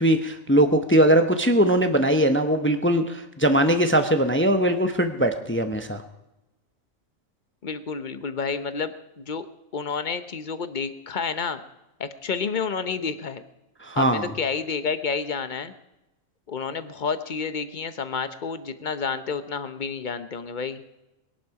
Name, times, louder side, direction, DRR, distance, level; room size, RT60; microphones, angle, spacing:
voice 1, 0.0-6.0 13.8-14.3, right 1 dB, 10° left, 7 dB, 0.7 m, -21 dB
voice 2, 7.6-9.5 9.7-11.6 12.0-13.4 14.0-15.7 16.5-20.8, left 5 dB, 40° left, 11 dB, 0.9 m, -30 dB
21.0 x 11.5 x 4.8 m, 0.96 s
omnidirectional pair, 1.4 m